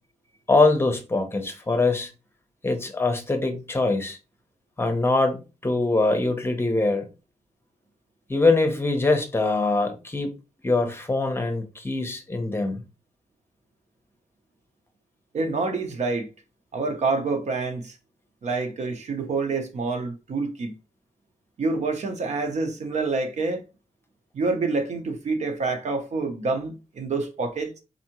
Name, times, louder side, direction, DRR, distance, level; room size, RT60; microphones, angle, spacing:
voice 1, 0.5-2.1 2.6-4.2 4.8-7.1 8.3-10.3 10.6-12.8, left 3 dB, 20° left, 0.8 m, -23 dB
voice 2, 15.3-16.3 16.7-18.0 18.4-20.7 21.6-23.6 24.3-27.8, right 3 dB, 70° right, 0.8 m, -27 dB
4.0 x 3.4 x 3.0 m
wide cardioid pair, 130°, 12 cm